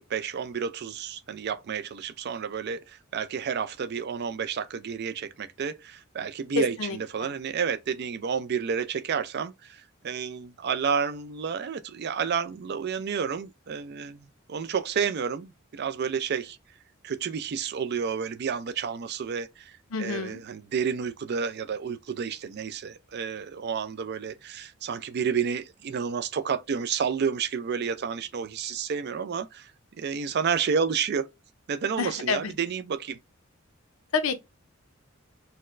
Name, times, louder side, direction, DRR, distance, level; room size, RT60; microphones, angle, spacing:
voice 1, 0.0-16.6 17.0-29.7 30.0-31.3 31.7-33.2, right 6 dB, 55° right, 0.4 m, -30 dB
voice 2, 6.6-7.3 19.9-20.4 32.0-32.5 34.1-34.4, left 5 dB, 80° left, 0.6 m, -29 dB
4.1 x 2.1 x 2.4 m
head